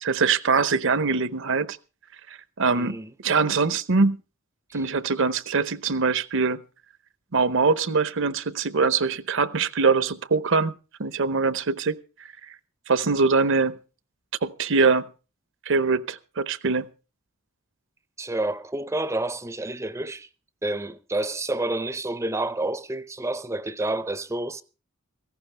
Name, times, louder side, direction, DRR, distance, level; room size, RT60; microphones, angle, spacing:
voice 1, 0.0-1.7 2.6-3.0 3.2-4.2 4.7-6.6 7.3-10.7 11.0-12.0 12.9-13.7 14.4-15.0 15.7-16.9, right 4 dB, 60° right, 0.8 m, -23 dB
voice 2, 2.7-3.1 4.7-4.9 18.2-20.3 20.6-24.6, right 2 dB, 15° right, 0.6 m, -29 dB
17.5 x 15.0 x 3.3 m
head